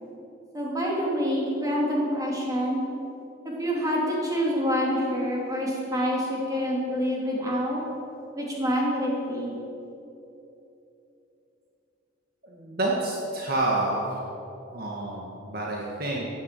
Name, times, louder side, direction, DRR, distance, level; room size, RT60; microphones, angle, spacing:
voice 1, 0.5-2.8 3.4-7.8 8.3-9.5, equal, 15° right, -3 dB, 3.0 m, -27 dB
voice 2, 12.4-14.2 14.7-16.3, right 2 dB, 50° right, -2 dB, 1.8 m, -28 dB
15.0 x 9.5 x 7.6 m, 3.0 s
head